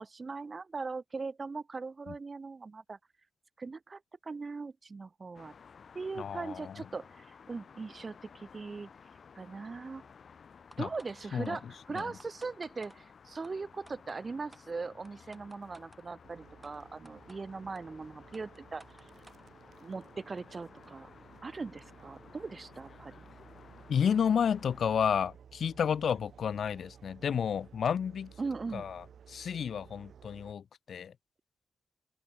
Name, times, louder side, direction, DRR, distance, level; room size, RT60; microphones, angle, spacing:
voice 1, 0.0-3.0 3.6-5.5 5.9-8.9 9.4-10.1 10.8-18.8 19.8-21.1 21.4-23.1 28.4-28.9, right 4 dB, 40° right, 0.4 m, -40 dB
sound 1, 5.3-25.1, left 6 dB, 60° left, 4.6 m, -56 dB
voice 2, 6.2-6.8 10.8-10.9 11.3-11.6 11.9-12.1 23.9-28.3 28.7-31.1, left 7 dB, 75° left, 1.0 m, -31 dB
sound 2, 10.7-11.2 11.4-11.5 12.0-13.0 13.4-13.5 13.9-14.2 14.5-14.7 15.1-16.0 16.6-16.7 17.1-17.4 17.8-17.9 18.3-19.4, right 2 dB, 20° right, 5.6 m, -56 dB
sound 3, 16.2-30.5, right 8 dB, 80° right, 3.9 m, -56 dB
wide cardioid pair, 115°, 0 cm